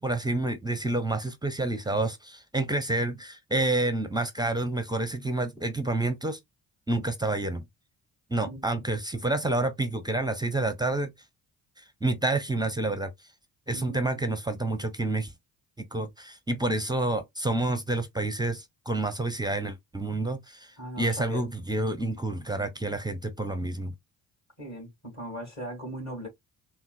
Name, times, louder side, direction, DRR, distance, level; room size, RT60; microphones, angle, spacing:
voice 1, 0.0-6.4 6.9-7.6 8.3-11.1 12.0-13.1 13.7-15.3 15.9-20.7 21.0-23.9, right 2 dB, 10° right, 0.5 m, -28 dB
voice 2, 13.7-14.2 20.8-21.4 24.6-26.3, equal, 35° left, 2.1 m, -38 dB
3.7 x 2.1 x 2.4 m
figure-of-eight pair, 40°, 46 cm